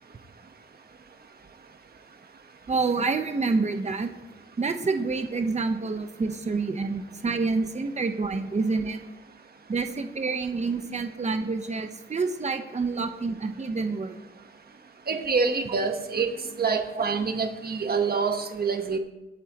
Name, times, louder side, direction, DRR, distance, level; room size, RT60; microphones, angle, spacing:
voice 1, 2.7-4.1 4.6-9.0 9.7-14.2 15.7-15.8 16.9-17.0, right 4 dB, 35° right, 6 dB, 1.0 m, -28 dB
voice 2, 15.1-16.3 16.6-19.0, right 5 dB, 50° right, 5 dB, 1.3 m, -26 dB
23.0 x 8.9 x 3.0 m, 1.0 s
wide cardioid pair, 125°, 20 cm